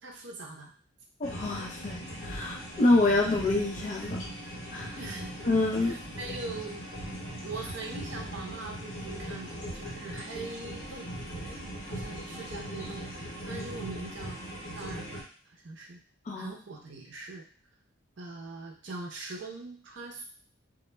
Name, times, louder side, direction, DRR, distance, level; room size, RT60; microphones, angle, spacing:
voice 1, 0.0-0.7 5.0-5.4 5.8-6.8 7.4-11.1 11.4-14.4 14.7-16.0 16.4-17.5 18.2-20.2, right 3 dB, 60° right, 1 dB, 0.5 m, -42 dB
sound 1, 1.2-15.2, equal, 80° left, 0.8 m, -39 dB
voice 2, 1.2-4.2 4.7-5.0 5.5-6.0 16.3-16.5, left 2 dB, 40° left, 0 dB, 0.4 m, -27 dB
2.1 x 2.0 x 3.1 m, 0.42 s
head